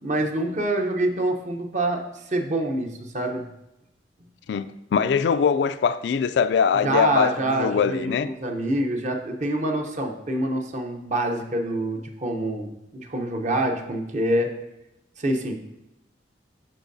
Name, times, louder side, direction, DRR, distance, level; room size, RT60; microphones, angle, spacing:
voice 1, 0.0-3.5 6.7-14.5 15.2-15.6, right 1 dB, 40° right, 0.7 m, -26 dB
voice 2, 4.9-8.3, left 6 dB, 75° left, 0.3 m, -22 dB
11.5 x 4.5 x 2.7 m
head